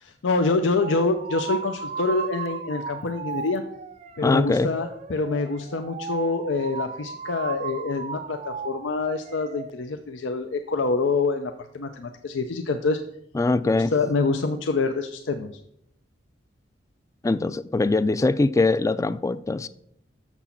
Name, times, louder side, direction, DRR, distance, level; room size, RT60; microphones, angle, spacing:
voice 1, 0.0-3.6 4.2-13.0 13.7-15.5, left 3 dB, 90° left, 0.6 m, -26 dB
sound 1, 0.8-9.7, right 5 dB, 35° right, 0.5 m, -35 dB
voice 2, 4.2-4.7 13.3-13.9 17.2-19.7, left 3 dB, 15° left, 0.3 m, -22 dB
6.8 x 6.1 x 5.8 m
head